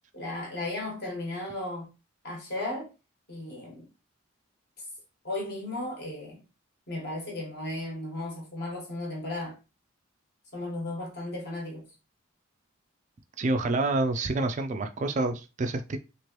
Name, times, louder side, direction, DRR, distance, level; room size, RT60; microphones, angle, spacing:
voice 1, 0.1-1.9 2.2-2.9 3.3-3.8 5.2-6.4 6.9-9.5 10.5-11.9, left 2 dB, 50° left, 1.3 m, -35 dB
voice 2, 13.4-16.0, right 2 dB, 35° right, 0.3 m, -28 dB
3.0 x 2.5 x 2.9 m
head